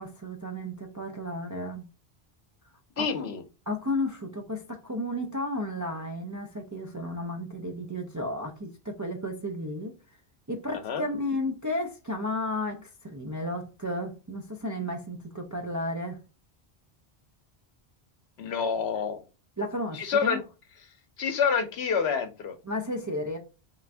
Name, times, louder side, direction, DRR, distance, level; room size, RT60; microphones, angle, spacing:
voice 1, 0.0-1.9 3.0-3.3 3.7-10.0 10.5-16.2 19.6-20.4 22.6-23.4, left 1 dB, 30° right, 0.4 m, -33 dB
voice 2, 3.0-3.4 10.7-11.0 18.4-19.2 19.9-20.4 21.2-22.6, left 6 dB, 75° left, 1.0 m, -27 dB
3.7 x 2.5 x 3.3 m
omnidirectional pair, 1.1 m